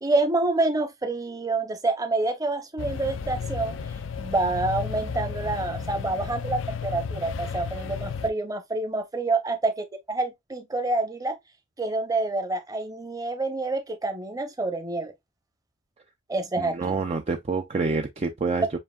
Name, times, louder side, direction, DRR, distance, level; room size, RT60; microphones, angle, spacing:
voice 1, 0.0-3.8 4.2-11.4 11.8-15.1 16.3-17.0, right 2 dB, 20° right, 0.8 m, -27 dB
sound 1, 2.8-8.3, left 5 dB, 75° left, 0.4 m, -33 dB
voice 2, 16.6-18.8, right 4 dB, 35° right, 0.4 m, -27 dB
7.3 x 2.5 x 2.3 m
head